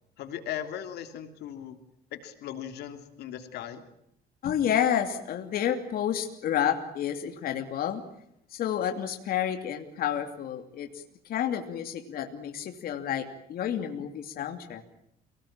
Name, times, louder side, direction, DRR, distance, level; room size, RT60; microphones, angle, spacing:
voice 1, 0.2-1.8 2.1-3.8, left 10 dB, 75° left, 8 dB, 3.1 m, -38 dB
voice 2, 4.4-8.0 8.5-10.9 11.3-14.8, left 9 dB, 60° left, 6 dB, 2.8 m, -30 dB
30.0 x 19.0 x 8.9 m, 0.76 s
cardioid pair, 110°, 17 cm